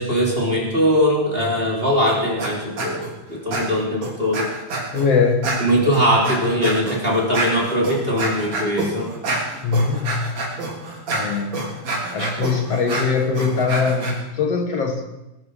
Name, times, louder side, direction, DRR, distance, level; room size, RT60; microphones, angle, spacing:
voice 1, 0.0-3.0 3.3-4.4 5.6-9.1, equal, 15° right, -2 dB, 3.2 m, -20 dB
sound 1, 2.1-2.5 2.8-3.1 3.5-5.1 5.4-14.1, right 2 dB, 50° right, 4.8 m, -27 dB
voice 2, 4.9-5.5 9.6-10.3 11.1-11.7 12.1-15.0, left 5 dB, 55° left, 4 dB, 2.0 m, -21 dB
20.5 x 13.5 x 5.0 m, 0.93 s
omnidirectional pair, 4.1 m